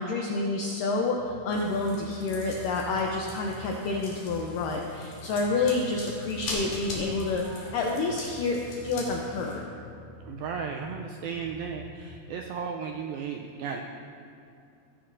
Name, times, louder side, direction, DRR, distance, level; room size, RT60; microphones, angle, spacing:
voice 1, 0.0-9.6, left 3 dB, 80° left, 0 dB, 1.9 m, -29 dB
sound 1, 1.2-12.1, left 3 dB, 45° left, 2.0 m, -46 dB
sound 2, 1.5-9.6, left 2 dB, 65° left, 4.0 m, -42 dB
voice 2, 10.3-13.8, right 6 dB, 90° right, 2 dB, 2.1 m, -35 dB
20.0 x 10.0 x 2.6 m, 2.6 s
omnidirectional pair, 4.8 m